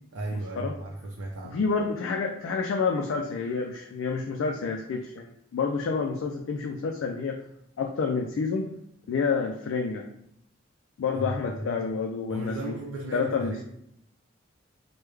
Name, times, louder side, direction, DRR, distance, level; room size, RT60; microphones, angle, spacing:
voice 1, 0.1-1.6 11.1-11.9 12.3-13.6, right 1 dB, 85° right, -2 dB, 0.5 m, -35 dB
voice 2, 1.5-7.4 7.8-8.7 9.1-10.0 11.0-12.7 13.1-13.5, left 5 dB, 75° left, 2 dB, 0.3 m, -28 dB
3.3 x 2.2 x 3.2 m, 0.74 s
head